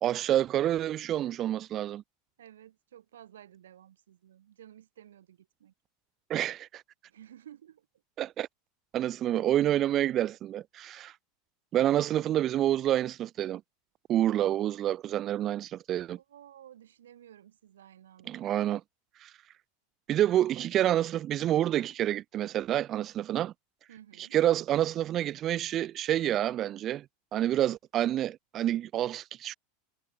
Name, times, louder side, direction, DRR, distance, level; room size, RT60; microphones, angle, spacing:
voice 1, 0.0-2.0 6.3-6.8 8.2-8.5 8.9-11.1 11.7-13.6 14.1-16.2 18.3-18.8 19.2-19.3 20.1-23.5 24.2-27.0 27.3-29.5, right 12 dB, 40° right, 0.6 m, -28 dB
voice 2, 2.4-5.7 7.1-7.9 16.2-18.5 23.9-24.4, right 11 dB, 70° right, 3.4 m, -53 dB
figure-of-eight pair, 85°, 0 cm